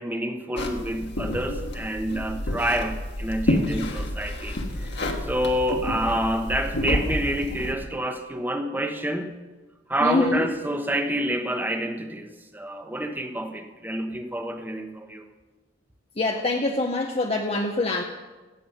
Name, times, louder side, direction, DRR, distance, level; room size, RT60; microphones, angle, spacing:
voice 1, 0.0-4.9 5.2-9.3 9.9-15.2, right 1 dB, 10° right, 6 dB, 0.9 m, -28 dB
sound 1, 0.6-7.7, left 1 dB, 65° left, 1.4 m, -29 dB
voice 2, 10.0-10.5 16.2-18.0, left 2 dB, 30° left, 3 dB, 0.7 m, -24 dB
16.5 x 7.4 x 5.5 m, 1.2 s
head